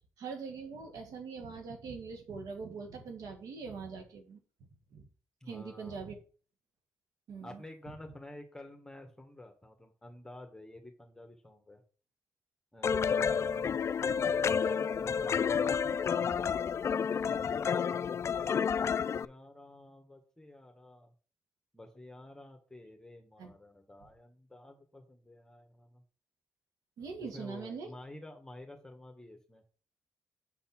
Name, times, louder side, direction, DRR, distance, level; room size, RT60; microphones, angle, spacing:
voice 1, 0.2-4.4 4.9-5.1 5.5-6.2 7.3-7.6 23.4-23.5 27.0-27.9, right 5 dB, 85° right, 4 dB, 1.8 m, -42 dB
voice 2, 5.4-6.1 7.4-11.8 12.7-14.0 14.3-21.1 21.7-26.0 27.3-29.6, left 1 dB, 10° left, 4 dB, 1.4 m, -51 dB
Piano Gertruda (Ready for Loop), 12.8-19.3, left 7 dB, 50° left, 0.3 m, -30 dB
6.9 x 4.1 x 5.8 m, 0.39 s
cardioid pair, 70°, 6 cm